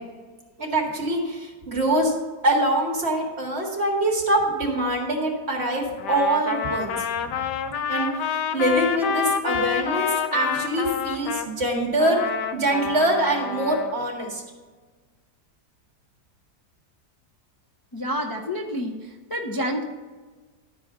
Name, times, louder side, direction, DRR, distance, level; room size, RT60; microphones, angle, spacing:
voice 1, 0.6-2.1 2.4-7.0 7.9-12.2 12.5-14.4, right 1 dB, 40° right, -1 dB, 2.1 m, -24 dB
Trumpet, 6.0-11.5 12.0-13.9, left 7 dB, 85° left, 1.3 m, -28 dB
voice 2, 17.9-19.8, equal, 30° left, 1 dB, 0.4 m, -29 dB
12.0 x 4.8 x 6.7 m, 1.4 s
omnidirectional pair, 1.8 m